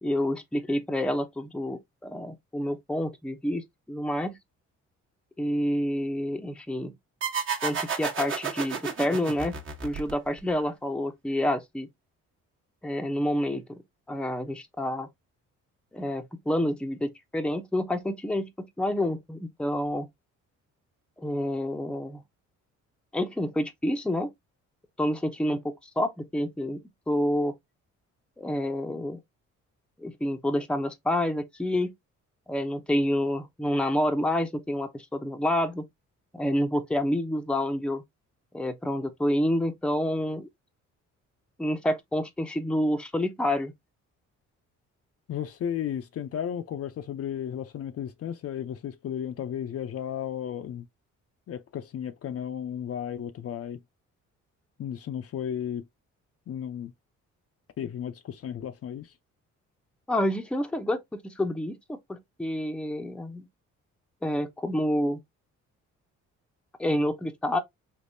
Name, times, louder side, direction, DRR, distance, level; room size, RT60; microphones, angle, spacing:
voice 1, 0.0-4.4 5.4-6.9 7.6-9.5 9.8-11.9 12.8-13.8 14.1-15.1 15.9-18.5 18.8-20.1 21.2-22.2 23.1-24.3 25.0-26.8 27.1-27.5 28.4-29.2 30.0-31.9 32.5-35.8 36.3-38.0 38.5-40.5 41.6-43.7 60.1-63.5 64.2-65.2 66.8-67.6, left 1 dB, 5° left, 0.6 m, -28 dB
sound 1, 7.2-10.5, right 6 dB, 40° right, 1.1 m, -31 dB
voice 2, 45.3-50.9 51.5-53.8 54.8-55.8 56.5-56.9 57.8-59.1, left 9 dB, 50° left, 0.5 m, -34 dB
3.5 x 2.8 x 2.6 m
cardioid pair, 90°, 30 cm